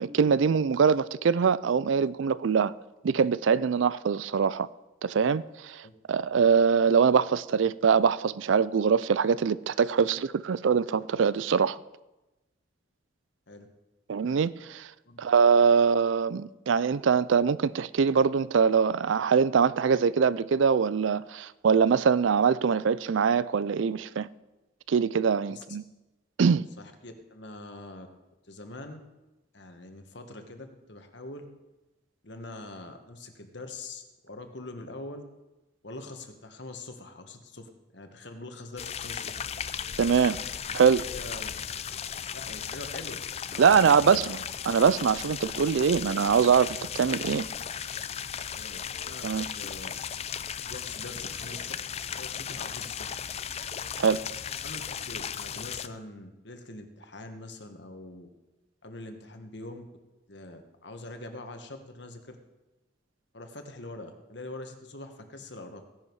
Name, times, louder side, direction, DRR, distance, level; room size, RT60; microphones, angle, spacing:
voice 1, 0.0-2.7 3.0-4.7 5.0-11.8 14.1-14.9 15.2-24.3 24.9-25.8 26.4-26.7 40.0-40.4 40.7-41.0 43.6-44.4 44.7-47.4 49.2-49.4 54.0-54.2, right 6 dB, 75° right, 0.4 m, -23 dB
voice 2, 25.5-25.8 26.8-28.1 28.5-29.0 29.5-31.4 32.2-35.2 35.8-39.4 40.7-40.8 41.1-41.5 42.3-44.3 48.5-49.3 49.5-49.9 50.7-53.1 54.6-54.8 55.0-58.3 58.8-59.9 60.3-62.4 63.3-65.8, left 2 dB, 60° left, 1.5 m, -43 dB
sound 1, 38.8-55.9, left 8 dB, 30° left, 0.4 m, -36 dB
16.5 x 10.5 x 4.7 m
head